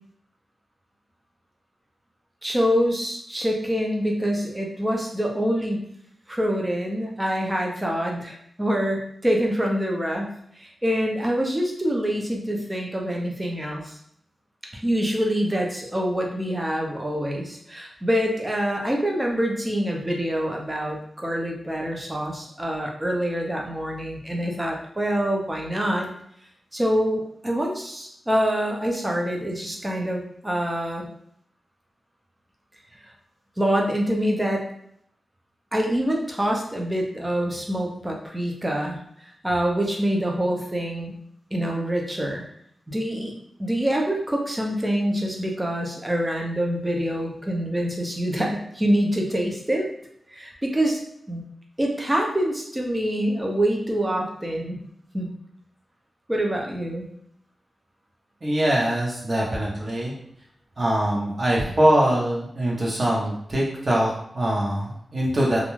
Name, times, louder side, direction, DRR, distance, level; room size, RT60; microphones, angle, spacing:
voice 1, 2.4-5.8 6.3-10.3 10.6-14.0 14.7-26.1 26.7-31.0 33.6-34.6 35.7-41.1 41.5-42.4 42.9-43.3 43.6-49.9 50.3-51.0 51.3-51.4 51.8-54.8 55.1-55.3 56.3-57.1, equal, 15° right, 0 dB, 0.6 m, -25 dB
voice 2, 58.4-60.1 60.8-65.6, right 1 dB, 40° right, -5 dB, 0.9 m, -23 dB
2.4 x 2.2 x 3.1 m, 0.70 s
wide cardioid pair, 85°, 0 cm